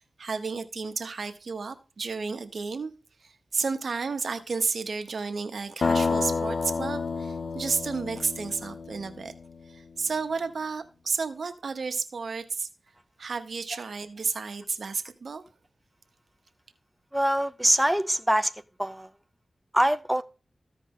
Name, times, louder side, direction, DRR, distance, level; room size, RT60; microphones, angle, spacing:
voice 1, 0.2-2.9 3.2-9.3 9.7-12.7 13.2-15.4, right 4 dB, 75° right, 1.0 m, -32 dB
sound 1, 5.8-9.6, left 4 dB, 80° left, 0.4 m, -29 dB
voice 2, 17.1-18.5 18.8-19.1 19.7-20.2, right 1 dB, 10° right, 0.5 m, -23 dB
14.5 x 5.0 x 3.7 m
cardioid pair, 55°, 0 cm